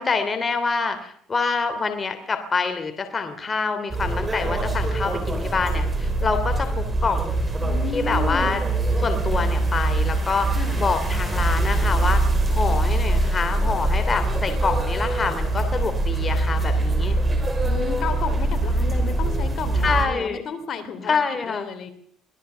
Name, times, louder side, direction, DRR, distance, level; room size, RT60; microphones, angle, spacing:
voice 1, 0.0-7.4 7.9-8.6 9.0-12.2 12.5-17.2 19.8-20.4 21.1-21.7, left 4 dB, 30° left, 7 dB, 3.0 m, -26 dB
sound 1, 3.9-20.0, right 2 dB, 20° right, 5.5 m, -23 dB
voice 2, 7.6-8.6 10.5-10.8 17.6-21.9, left 6 dB, 50° left, 9 dB, 3.2 m, -32 dB
24.0 x 17.0 x 6.9 m, 0.63 s
cardioid pair, 110°, 0 cm